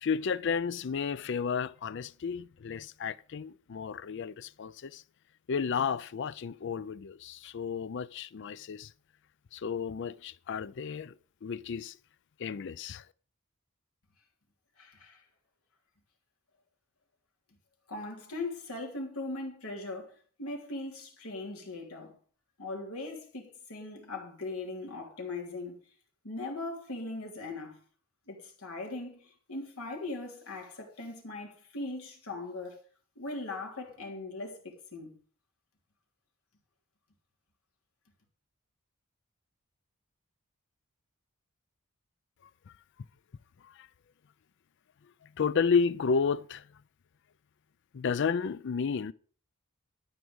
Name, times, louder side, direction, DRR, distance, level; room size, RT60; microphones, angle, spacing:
voice 1, 0.0-5.0 5.5-8.9 9.5-11.1 11.4-12.0 12.4-13.0 43.6-43.9 45.4-46.6 47.9-49.1, left 5 dB, 55° left, 0.4 m, -32 dB
voice 2, 14.8-15.2 17.9-20.1 20.4-22.1 22.6-25.8 26.2-27.8 28.3-32.8 33.1-35.2, left 2 dB, 80° left, 3.2 m, -39 dB
12.5 x 5.0 x 7.9 m
head